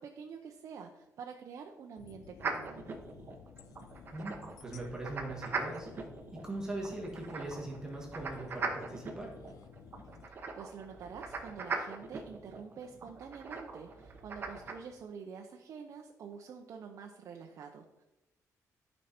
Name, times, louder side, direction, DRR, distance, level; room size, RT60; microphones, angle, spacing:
voice 1, 0.0-2.8 10.2-18.0, right 6 dB, 55° right, 2 dB, 0.7 m, -47 dB
sound 1, 2.0-10.3, left 8 dB, 75° left, 0.6 m, -55 dB
sound 2, 2.4-14.7, right 4 dB, 35° right, 1.0 m, -41 dB
voice 2, 4.1-5.9 6.3-9.3, right 2 dB, 10° right, -3 dB, 1.7 m, -41 dB
12.0 x 5.3 x 4.3 m, 1.0 s
cardioid pair, 165°, 6 cm